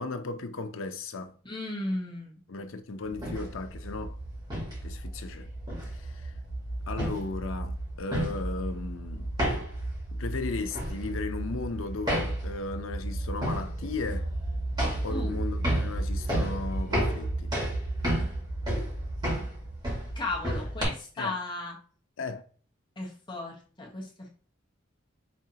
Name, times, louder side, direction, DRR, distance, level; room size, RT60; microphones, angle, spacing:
voice 1, 0.0-1.3 2.5-4.2 4.8-5.5 5.9-6.3 6.9-9.3 10.1-14.3 15.0-17.5 21.2-21.3 22.2-22.4, left 3 dB, 90° left, 0.6 m, -36 dB
voice 2, 1.4-2.4 15.1-15.4 20.1-21.8 23.0-24.3, left 2 dB, 25° left, 1.3 m, -35 dB
sound 1, 3.1-20.8, right 1 dB, 25° right, 2.2 m, -32 dB
5.3 x 3.5 x 2.8 m
head